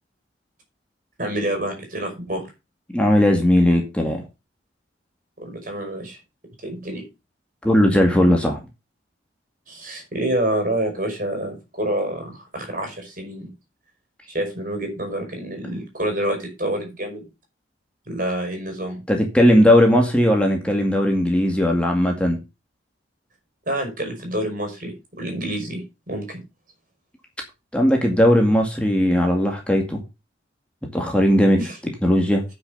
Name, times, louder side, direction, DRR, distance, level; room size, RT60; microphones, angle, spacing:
voice 1, 1.2-2.5 5.4-6.2 6.6-7.0 9.7-13.5 14.3-17.2 18.1-19.0 23.7-26.4 31.6-31.8, right 1 dB, 45° right, 4 dB, 5.3 m, -27 dB
voice 2, 2.9-4.2 7.6-8.6 19.1-22.4 27.7-30.0 30.9-31.6 32.0-32.4, equal, 5° left, 1 dB, 2.1 m, -17 dB
9.9 x 6.3 x 6.7 m, 0.27 s
head